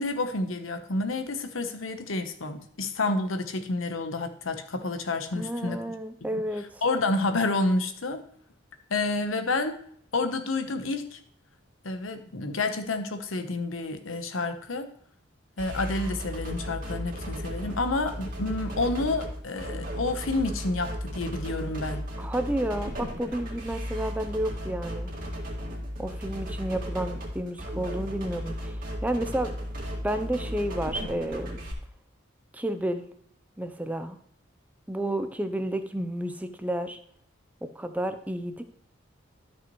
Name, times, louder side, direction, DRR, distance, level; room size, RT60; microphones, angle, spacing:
voice 1, 0.0-5.8 6.3-6.4 6.8-8.2 8.9-9.8 10.1-11.2 11.8-14.9 15.6-22.1, left 2 dB, 90° left, 8 dB, 1.0 m, -29 dB
voice 2, 5.3-6.8 22.2-25.1 26.0-29.5 30.0-31.6 32.5-33.0 33.6-34.2 34.9-37.0 37.6-38.6, right 1 dB, 10° right, 8 dB, 0.5 m, -31 dB
sound 1, 15.6-31.7, equal, 45° right, 2.1 m, -35 dB
13.0 x 5.9 x 3.1 m, 0.62 s
head